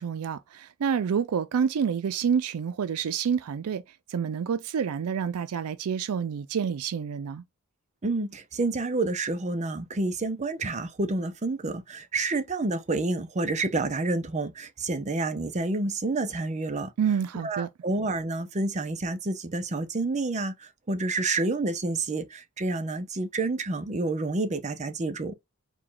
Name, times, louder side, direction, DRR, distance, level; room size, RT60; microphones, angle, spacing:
voice 1, 0.0-3.8 4.1-7.4 17.0-17.7, right 7 dB, 90° right, 0.4 m, -28 dB
voice 2, 8.0-16.9 17.4-25.3, right 2 dB, 30° right, 0.6 m, -29 dB
4.8 x 2.3 x 3.8 m
head